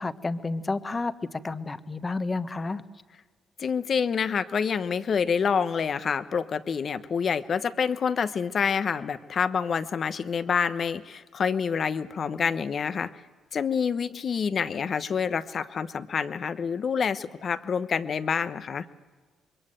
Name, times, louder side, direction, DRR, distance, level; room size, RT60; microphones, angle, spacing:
voice 1, 0.0-2.8, left 3 dB, 30° left, 10 dB, 1.3 m, -31 dB
voice 2, 3.6-13.1 13.5-18.8, left 6 dB, 55° left, 12 dB, 1.0 m, -27 dB
26.0 x 22.5 x 7.8 m, 1.4 s
supercardioid pair, 60°, 0 cm